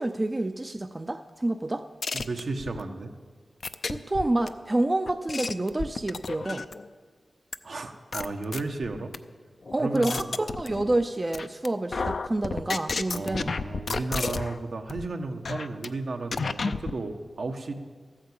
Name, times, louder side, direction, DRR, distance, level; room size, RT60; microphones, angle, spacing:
voice 1, 0.0-1.9 3.9-6.7 9.7-13.5, right 2 dB, 30° right, 8 dB, 0.5 m, -28 dB
sound 1, 2.0-2.8 3.6-4.5 5.1-6.9 7.5-7.6 8.1-9.2 9.7-11.0 11.3-11.7 11.9-14.6 14.9-15.1 15.4-15.9 16.3-16.9, left 4 dB, 65° left, 0.5 m, -31 dB
voice 2, 2.1-3.1 7.6-9.1 9.8-10.3 12.5-12.7 13.1-17.7, right 3 dB, 70° right, 4 dB, 1.1 m, -33 dB
13.5 x 8.9 x 7.8 m, 1.5 s
wide cardioid pair, 70°, 0 cm